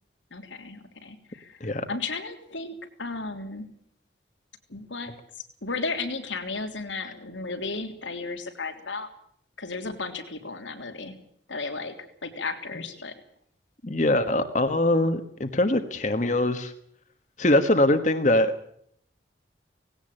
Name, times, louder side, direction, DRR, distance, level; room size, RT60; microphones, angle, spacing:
voice 1, 0.3-3.7 4.7-9.1 9.6-11.1 11.5-11.9 12.2-13.1, left 3 dB, 85° left, 7 dB, 3.2 m, -34 dB
voice 2, 13.8-16.7 17.4-18.5, left 1 dB, 40° left, 8 dB, 1.4 m, -22 dB
19.0 x 17.5 x 8.9 m, 0.67 s
head